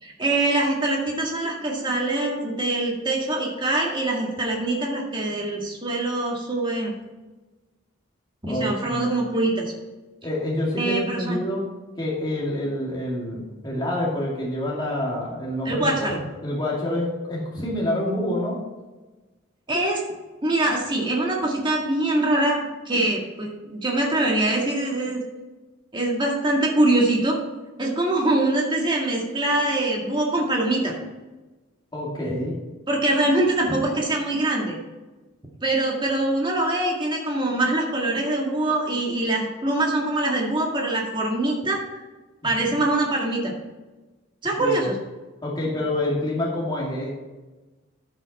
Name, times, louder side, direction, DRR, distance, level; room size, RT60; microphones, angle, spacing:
voice 1, 0.0-6.9 8.4-9.7 10.8-11.4 15.7-16.2 17.5-17.6 19.7-20.0 20.4-25.2 25.9-27.4 27.8-30.9 32.9-34.8 35.6-42.0 42.4-43.5 44.4-45.0, right 2 dB, 20° right, -1 dB, 1.9 m, -23 dB
voice 2, 8.5-9.1 10.2-11.7 12.0-18.6 31.9-32.6 44.6-44.9 45.4-47.1, left 1 dB, 20° left, -4 dB, 2.3 m, -27 dB
13.0 x 5.6 x 4.2 m, 1.2 s
head